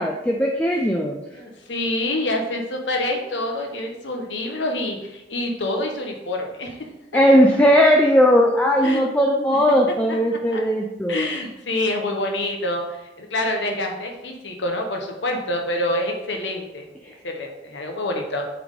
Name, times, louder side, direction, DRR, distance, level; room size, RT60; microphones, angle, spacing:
voice 1, 0.0-1.2 7.1-11.2, equal, 10° left, 0 dB, 0.4 m, -18 dB
voice 2, 1.3-6.9 8.8-9.0 10.1-10.6 11.1-18.5, left 1 dB, 80° left, 2 dB, 1.1 m, -27 dB
7.6 x 3.5 x 3.7 m, 0.93 s
head